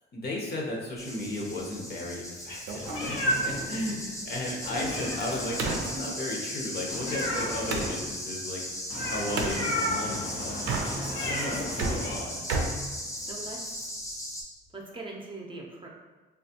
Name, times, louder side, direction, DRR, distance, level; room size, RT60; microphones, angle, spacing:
voice 1, 0.1-8.6 9.1-12.4, left 1 dB, 55° left, -2 dB, 0.8 m, -35 dB
sound 1, 1.0-14.4, equal, 15° left, 0.6 m, -37 dB
sound 2, 2.7-8.0 9.4-9.6 10.5-11.3 11.6-13.6, right 3 dB, 90° right, 0.5 m, -34 dB
Meow, 2.8-3.6 4.6-5.9 6.9-7.9 8.9-12.1, left 1 dB, 90° left, 0.7 m, -32 dB
voice 2, 13.1-13.9 14.7-15.9, right 2 dB, 25° right, -2 dB, 0.6 m, -42 dB
3.3 x 2.3 x 2.8 m, 1.2 s
cardioid pair, 90°, 20 cm